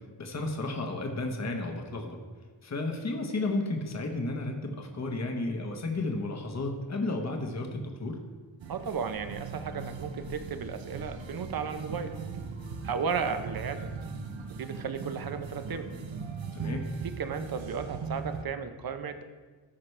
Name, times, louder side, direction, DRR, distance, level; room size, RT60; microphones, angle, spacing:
voice 1, 0.2-2.2 2.6-8.2 16.5-16.9, left 2 dB, 35° left, 3 dB, 1.1 m, -33 dB
sound 1, 8.6-18.4, right 5 dB, 85° right, 0.8 m, -39 dB
voice 2, 8.7-12.1 12.8-13.9 14.5-15.9 17.0-19.2, right 6 dB, 50° right, 9 dB, 0.8 m, -34 dB
14.0 x 5.9 x 3.3 m, 1.4 s
wide cardioid pair, 120°, 44 cm